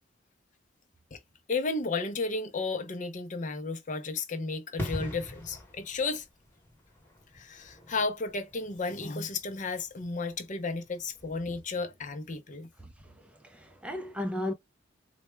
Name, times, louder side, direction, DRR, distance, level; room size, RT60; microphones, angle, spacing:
voice 1, 1.5-6.2 7.3-12.7, left 3 dB, 40° left, 0.6 m, -33 dB
sound 1, 4.8-11.3 11.5-11.7, left 1 dB, 10° left, 1.1 m, -42 dB
voice 2, 12.8-14.5, left 1 dB, 5° right, 0.5 m, -36 dB
4.1 x 2.2 x 3.2 m
head